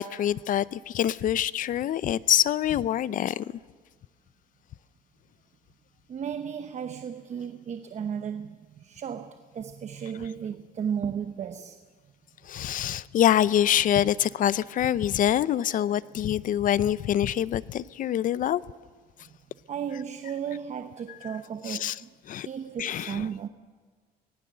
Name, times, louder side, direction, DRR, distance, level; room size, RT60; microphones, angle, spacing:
voice 1, 0.0-3.4 12.4-18.6 21.2-21.3 21.6-22.0 22.3-22.5 22.8-23.3, left 11 dB, 55° left, 0.6 m, -25 dB
voice 2, 6.1-11.8 15.8-16.0 18.3-18.4 19.7-22.1 22.5-23.5, right 7 dB, 40° right, 0.9 m, -34 dB
24.5 x 19.0 x 6.8 m
cardioid pair, 110°, 17 cm